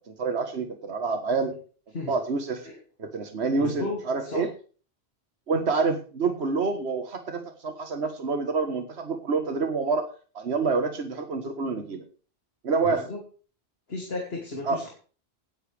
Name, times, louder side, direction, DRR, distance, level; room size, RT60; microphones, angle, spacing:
voice 1, 0.1-1.6 2.1-2.7 3.0-4.5 5.5-10.1 10.3-12.0 12.6-13.1 14.6-14.8, right 4 dB, 80° right, 6 dB, 1.6 m, -27 dB
voice 2, 3.6-4.5 12.8-13.2 13.9-14.9, left 2 dB, 70° left, 0 dB, 2.9 m, -34 dB
18.0 x 10.0 x 3.4 m, 0.39 s
omnidirectional pair, 1.1 m